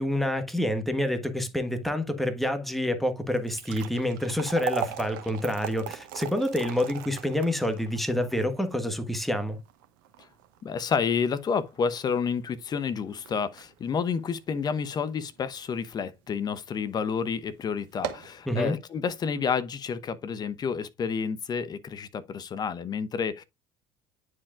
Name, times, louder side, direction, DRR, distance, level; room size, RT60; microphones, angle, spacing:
voice 1, 0.0-9.6 18.5-18.8, left 1 dB, ahead, 1.4 m, -28 dB
sound 1, 3.3-15.6 16.0-16.1 16.8-17.0 17.3-17.4 17.8-18.4, right 10 dB, 75° right, 1.0 m, -39 dB
voice 2, 10.6-23.4, left 6 dB, 40° left, 0.9 m, -30 dB
9.7 x 4.7 x 2.4 m
hypercardioid pair, 65°, 11 cm